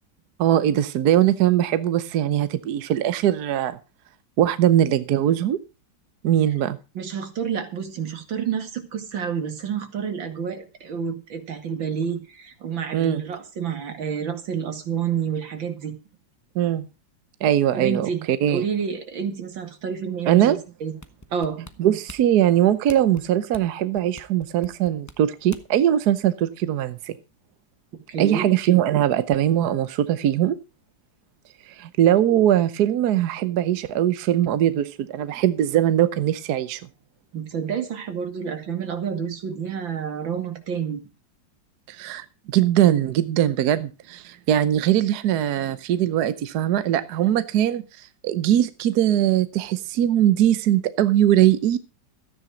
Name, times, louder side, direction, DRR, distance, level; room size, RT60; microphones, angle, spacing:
voice 1, 0.4-3.8 4.4-5.6 6.2-6.8 12.9-13.2 16.5-16.9 17.4-18.6 20.3-20.6 21.8-27.2 28.2-30.6 31.7-36.8 41.9-51.8, right 11 dB, 65° right, 13 dB, 1.2 m, -21 dB
voice 2, 6.9-15.9 17.7-18.2 18.5-20.5 20.8-20.9 21.3-21.6 28.1-28.5 37.3-41.0, right 7 dB, 85° right, 7 dB, 2.8 m, -29 dB
sound 1, 21.0-25.9 26.3-26.4, left 1 dB, 15° left, 0.6 m, -44 dB
13.5 x 9.8 x 5.0 m, 0.31 s
omnidirectional pair, 2.0 m